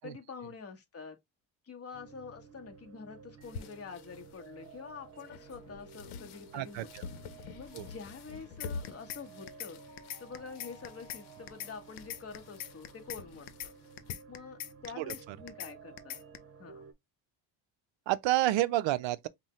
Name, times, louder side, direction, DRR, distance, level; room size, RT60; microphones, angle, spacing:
voice 1, 0.0-1.2 1.6-7.1 7.5-9.8 10.2-13.7 14.3-16.2 16.6-16.8, left 5 dB, 30° left, 1.2 m, -47 dB
sound 1, 1.9-16.9, right 6 dB, 30° right, 0.9 m, -54 dB
sound 2, 3.4-14.1, left 5 dB, 85° left, 0.9 m, -48 dB
voice 2, 6.5-7.0 7.7-7.8 15.0-15.1 18.1-19.3, right 15 dB, 65° right, 0.6 m, -29 dB
sound 3, 8.6-9.2 9.5-9.7 10.0-11.2 11.5-11.7 12.0-13.2 13.5-13.7 14.0-15.2 15.5-15.7 16.0-16.4, left 12 dB, 60° left, 0.7 m, -41 dB
5.5 x 2.3 x 3.0 m
cardioid pair, 145°, 48 cm